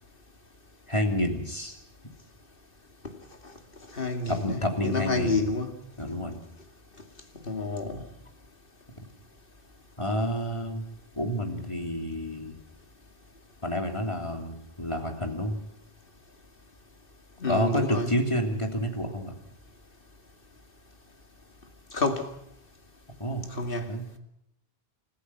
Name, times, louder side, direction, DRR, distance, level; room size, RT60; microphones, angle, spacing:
voice 1, 0.9-1.8 4.3-5.4 6.0-6.4 10.0-10.8 11.1-12.6 13.6-15.6 17.5-19.4 23.2-23.5 23.9-24.1, equal, 30° left, 3.3 m, -29 dB
voice 2, 3.9-5.7 7.5-8.0 17.4-18.1 21.9-22.3 23.5-23.9, left 2 dB, 60° left, 2.7 m, -29 dB
30.0 x 15.0 x 6.0 m
omnidirectional pair, 1.0 m